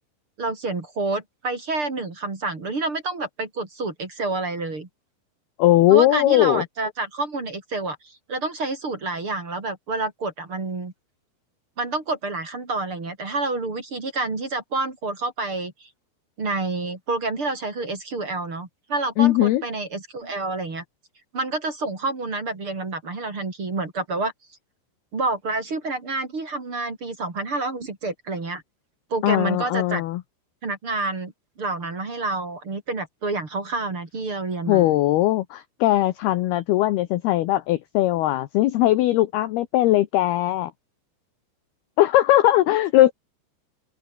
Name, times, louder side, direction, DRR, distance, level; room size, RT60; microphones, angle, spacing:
voice 1, 0.4-4.9 5.9-8.0 8.3-10.9 11.8-15.9 16.4-20.8 21.3-24.3 25.1-28.6 29.1-30.0 30.6-31.3 31.6-34.9, right 3 dB, 30° right, 4.1 m, -28 dB
voice 2, 5.6-6.7 19.2-19.6 29.2-30.2 34.7-40.7 42.0-43.1, left 15 dB, 75° left, 2.4 m, -19 dB
omnidirectional pair, 5.7 m